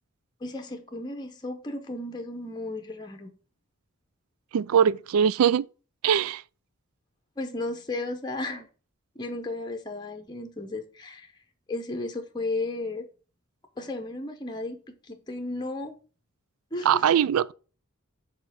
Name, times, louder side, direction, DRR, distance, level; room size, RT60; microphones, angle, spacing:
voice 1, 0.4-3.3 7.4-8.7 9.2-11.3 11.7-13.0 13.8-14.8 15.1-15.9 16.7-17.0, left 2 dB, 20° left, 0.7 m, -34 dB
voice 2, 4.5-5.6 6.0-6.4 16.8-17.5, right 8 dB, 75° right, 0.3 m, -21 dB
5.3 x 4.3 x 6.2 m
head